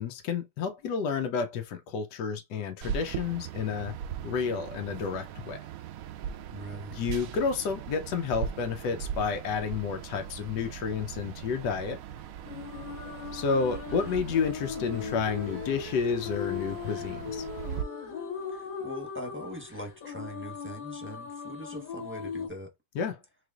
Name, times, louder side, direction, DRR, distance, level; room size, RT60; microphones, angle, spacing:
voice 1, 0.0-3.9 4.2-5.6 6.9-12.0 13.3-17.5 23.0-23.2, left 6 dB, 80° left, 1.3 m, -30 dB
sound 1, 2.8-17.8, right 9 dB, 70° right, 0.9 m, -40 dB
voice 2, 6.5-7.0 18.5-22.7, equal, 10° right, 0.9 m, -41 dB
sound 2, 12.4-22.5, left 6 dB, 55° left, 1.4 m, -38 dB
4.7 x 3.2 x 2.3 m
omnidirectional pair, 1.8 m